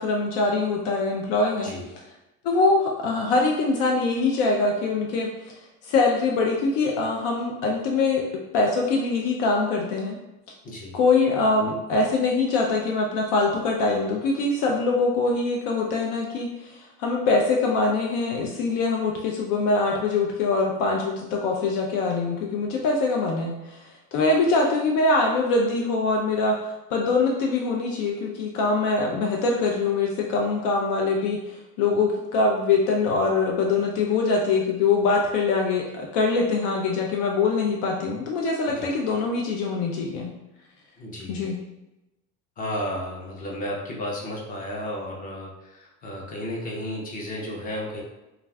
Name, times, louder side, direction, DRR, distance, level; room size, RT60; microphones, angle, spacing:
voice 1, 0.0-1.7 2.4-5.5 5.8-8.2 8.5-10.2 10.9-40.3 41.3-41.6, left 3 dB, 75° left, 0 dB, 0.5 m, -23 dB
voice 2, 10.6-11.0 38.8-38.9 41.0-41.4 42.6-48.0, left 1 dB, 25° left, -2 dB, 0.5 m, -33 dB
2.4 x 2.3 x 3.2 m, 0.97 s
cardioid pair, 165°, 32 cm